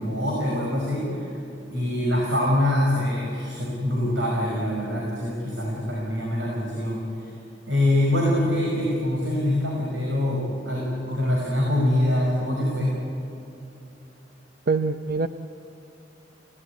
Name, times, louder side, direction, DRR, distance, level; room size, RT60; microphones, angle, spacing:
voice 1, 0.0-1.4 1.7-7.3 7.7-12.9, left 1 dB, 85° right, -3 dB, 5.6 m, -24 dB
voice 2, 14.7-15.3, right 4 dB, 55° right, 8 dB, 0.7 m, -24 dB
28.0 x 17.5 x 9.4 m, 2.9 s
head